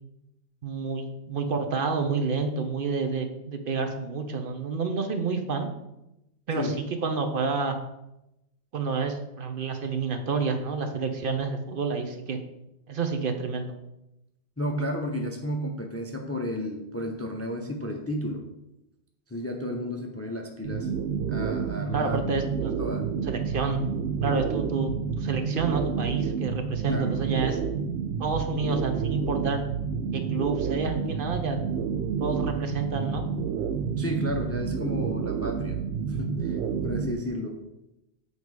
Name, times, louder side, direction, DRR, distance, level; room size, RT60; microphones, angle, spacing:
voice 1, 0.6-5.7 6.5-7.8 8.7-12.4 12.9-13.7 21.9-22.7 23.3-23.9 24.2-27.6 28.2-29.6 30.1-31.6 32.2-33.2, right 4 dB, 55° right, 5 dB, 0.8 m, -29 dB
voice 2, 14.6-18.5 19.3-20.9 21.3-22.2 22.6-23.1 26.9-27.2 34.0-35.8 36.1-37.6, equal, 20° left, 3 dB, 0.5 m, -32 dB
sound 1, 20.6-37.1, right 6 dB, 80° right, 0.9 m, -29 dB
7.0 x 4.1 x 4.7 m, 0.89 s
omnidirectional pair, 1.1 m